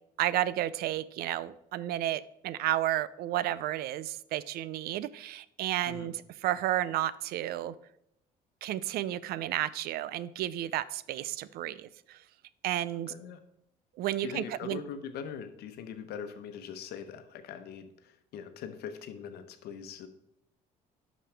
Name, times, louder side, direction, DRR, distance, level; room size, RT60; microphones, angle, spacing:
voice 1, 0.2-7.7 8.6-12.2 12.6-13.1 14.0-14.8, right 13 dB, 70° right, 18 dB, 0.4 m, -32 dB
voice 2, 13.1-13.4 14.2-20.1, left 7 dB, 70° left, 9 dB, 1.0 m, -42 dB
11.5 x 5.0 x 3.4 m, 0.78 s
supercardioid pair, 85°, 17 cm